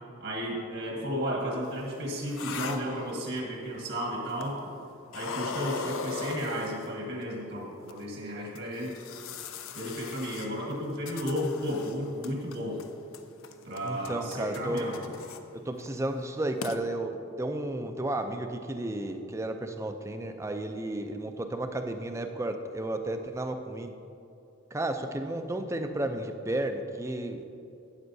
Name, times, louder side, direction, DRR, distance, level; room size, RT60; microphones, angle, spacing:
voice 1, 0.2-4.6 5.1-8.9 9.7-12.8 13.6-15.1, equal, 65° right, -2 dB, 1.4 m, -33 dB
sound 1, 1.7-3.6 4.3-4.8 5.1-7.2 7.9-8.0 8.5-12.0 12.2-12.9 13.1-15.4 15.8-16.0 16.3-16.4 16.6-16.8, left 4 dB, 80° left, 0.5 m, -39 dB
voice 2, 13.8-14.9 15.6-23.9 24.7-27.4, right 1 dB, 15° right, 6 dB, 0.4 m, -33 dB
12.5 x 8.6 x 2.7 m, 2.8 s
head